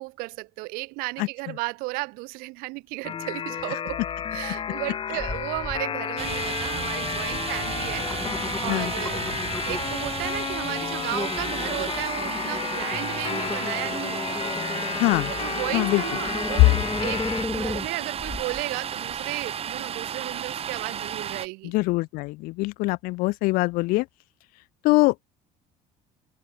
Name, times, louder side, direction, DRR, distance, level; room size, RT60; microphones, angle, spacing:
voice 1, 0.0-4.0 4.3-9.2 9.6-14.4 15.3-21.7, right 25 dB, 90° right, 1.8 m, -34 dB
sound 1, 3.0-17.4, left 8 dB, 35° left, 1.1 m, -32 dB
sound 2, 5.2-5.8 6.2-6.7 7.3-7.4 7.8-10.0 10.5-10.7 11.1-18.6 19.1-19.2, left 3 dB, 10° left, 0.7 m, -35 dB
Domestic sounds home sounds, 6.2-21.5, right 8 dB, 40° right, 4.4 m, -33 dB
voice 2, 14.9-15.3 15.7-16.0 21.6-24.1 24.8-25.1, left 22 dB, 80° left, 0.4 m, -23 dB
cardioid pair, 120°, 15 cm